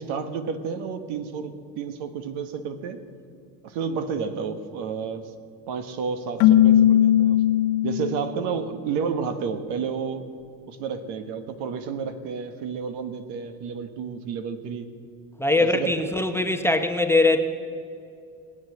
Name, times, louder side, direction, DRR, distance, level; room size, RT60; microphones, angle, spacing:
voice 1, 0.0-3.0 3.6-5.3 5.7-7.4 7.8-10.2 10.7-14.9 15.6-16.1, right 6 dB, 70° right, 9 dB, 1.5 m, -31 dB
Keyboard (musical), 6.4-8.4, left 11 dB, 75° left, 1.0 m, -18 dB
voice 2, 15.4-17.4, left 2 dB, 5° left, 5 dB, 0.8 m, -21 dB
19.5 x 8.8 x 7.9 m, 2.3 s
supercardioid pair, 110°, 43 cm